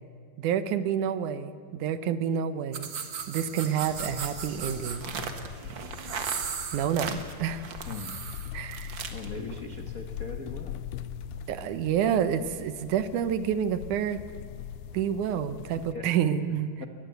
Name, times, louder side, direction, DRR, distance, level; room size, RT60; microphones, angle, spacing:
voice 1, 0.4-2.9 3.3-5.1 6.7-7.7 8.5-9.0 11.5-14.2 14.9-16.9, right 8 dB, 75° right, 13 dB, 2.2 m, -28 dB
sound 1, 2.7-9.3, right 6 dB, 50° right, 1.6 m, -36 dB
sound 2, 3.9-15.9, left 9 dB, 85° left, 2.4 m, -42 dB
voice 2, 9.1-10.8 15.9-16.1 16.8-16.9, left 4 dB, 65° left, 5 dB, 0.8 m, -39 dB
22.0 x 19.0 x 8.0 m, 2.2 s
omnidirectional pair, 3.8 m